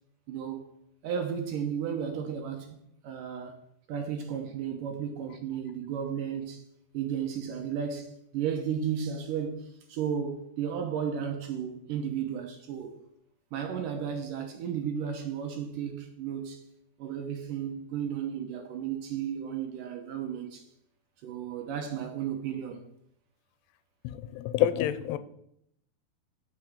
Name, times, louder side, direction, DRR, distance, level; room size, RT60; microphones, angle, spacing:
voice 1, 0.3-0.7 1.0-2.7 3.0-3.6 3.9-6.6 6.9-13.0 13.5-16.6 17.0-20.6 21.2-22.8, right 8 dB, 75° right, 2.0 m, -34 dB
voice 2, 24.0-25.2, left 12 dB, 85° left, 2.7 m, -28 dB
8.3 x 6.2 x 7.1 m
omnidirectional pair, 4.8 m